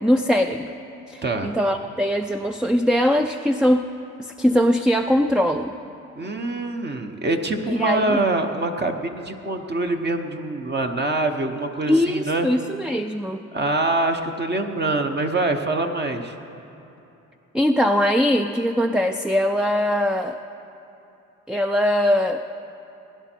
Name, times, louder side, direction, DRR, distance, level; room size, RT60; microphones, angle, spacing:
voice 1, 0.0-0.8 1.1-3.9 4.2-5.7 7.7-8.2 11.9-13.4 17.5-20.4 21.5-22.4, equal, 5° right, 6 dB, 0.3 m, -21 dB
voice 2, 1.2-1.5 6.2-12.5 13.5-16.4, right 2 dB, 35° right, 4 dB, 1.0 m, -24 dB
20.0 x 10.5 x 4.5 m, 2.9 s
cardioid pair, 90°, 30 cm